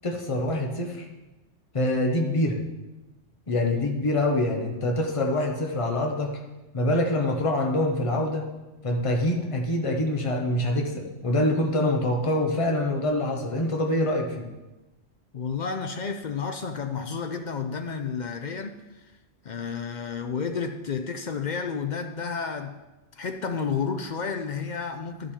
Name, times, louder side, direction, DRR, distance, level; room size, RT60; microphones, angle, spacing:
voice 1, 0.0-1.1 1.7-2.6 3.5-6.4 6.7-8.5 8.8-14.5, left 1 dB, 25° left, 1 dB, 1.1 m, -25 dB
voice 2, 15.3-19.1 19.4-22.8 23.2-25.3, left 5 dB, 55° left, 6 dB, 0.5 m, -31 dB
12.5 x 5.3 x 4.3 m, 1.1 s
omnidirectional pair, 1.3 m